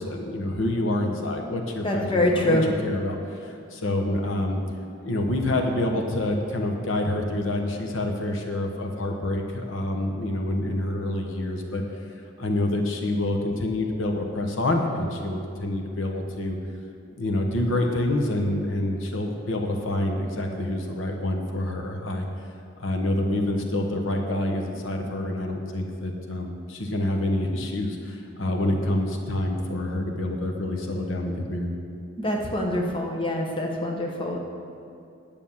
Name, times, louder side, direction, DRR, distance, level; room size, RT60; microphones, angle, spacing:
voice 1, 0.0-4.6 5.0-11.8 12.4-16.6 17.1-22.3 22.8-31.7, left 1 dB, 70° left, 2 dB, 1.1 m, -27 dB
voice 2, 1.8-2.6 32.2-34.4, left 1 dB, 25° left, 0 dB, 1.2 m, -25 dB
9.7 x 7.0 x 7.2 m, 2.6 s
head